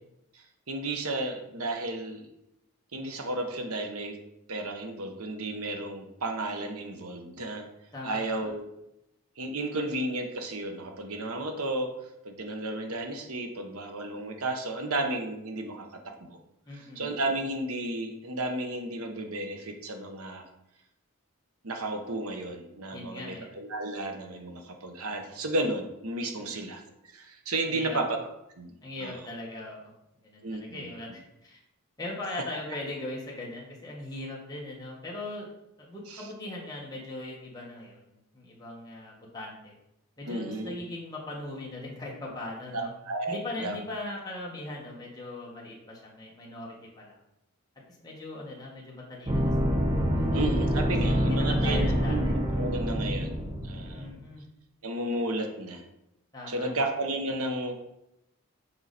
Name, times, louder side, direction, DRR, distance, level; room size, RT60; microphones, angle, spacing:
voice 1, 0.3-2.3 2.9-4.2 4.5-7.7 8.0-8.6 9.4-11.9 12.2-16.4 16.8-20.4 21.6-26.8 27.1-28.2 28.6-28.7 29.0-29.1 30.4-30.9 36.1-36.2 40.3-40.8 42.7-43.7 50.3-54.1 54.8-55.8 56.5-57.7, right 2 dB, 85° right, 4 dB, 1.0 m, -33 dB
voice 2, 7.9-8.5 16.7-17.1 22.9-23.5 26.4-26.6 27.7-28.0 28.8-29.9 30.2-31.6 32.0-35.5 35.8-39.7 40.2-42.9 43.3-47.2 48.0-50.6 51.0-52.2 52.5-52.8 53.9-54.5 56.3-56.8, left 2 dB, 15° left, -4 dB, 1.4 m, -40 dB
sound 1, 49.3-54.1, equal, 20° right, 0.7 m, -26 dB
7.1 x 4.7 x 4.1 m, 0.85 s
head